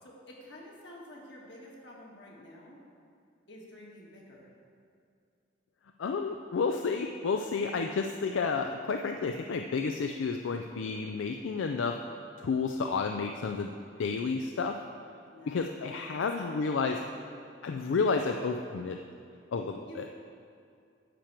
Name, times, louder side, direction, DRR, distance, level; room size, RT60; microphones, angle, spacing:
voice 1, 0.0-2.8 3.5-4.5 15.3-15.7 16.2-17.4 19.8-20.1, left 1 dB, 65° left, -3 dB, 1.7 m, -49 dB
voice 2, 6.0-12.0 12.4-13.7 14.0-14.8 15.5-17.0 17.6-19.0 19.5-20.1, left 4 dB, 85° left, 5 dB, 0.4 m, -31 dB
10.0 x 4.4 x 7.4 m, 2.4 s
head